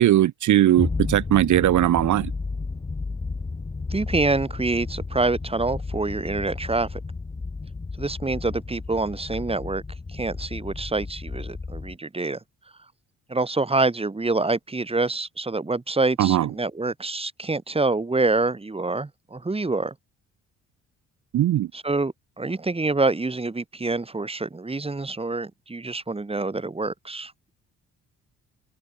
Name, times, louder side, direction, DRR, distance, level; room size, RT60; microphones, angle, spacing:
voice 1, 0.0-2.3 16.2-16.5 21.3-21.7, right 13 dB, 75° right, 2.6 m, -19 dB
sound 1, 0.8-11.9, left 3 dB, 20° left, 2.2 m, -33 dB
voice 2, 3.9-7.0 8.0-9.8 10.1-12.4 13.3-19.9 21.7-27.3, right 3 dB, 20° right, 3.8 m, -26 dB
open air
cardioid pair, 90°, 30 cm